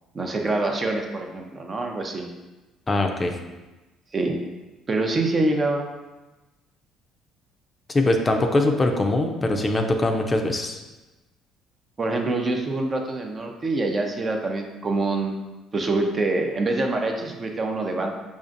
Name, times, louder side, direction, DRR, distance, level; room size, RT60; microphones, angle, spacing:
voice 1, 0.1-2.3 4.1-4.4 4.9-5.9 12.0-15.4 15.7-18.1, right 2 dB, 35° right, 3 dB, 0.5 m, -25 dB
voice 2, 2.9-3.3 7.9-10.8, left 2 dB, 25° left, 3 dB, 0.4 m, -22 dB
5.1 x 2.5 x 2.5 m, 1.1 s
supercardioid pair, 70°, 0 cm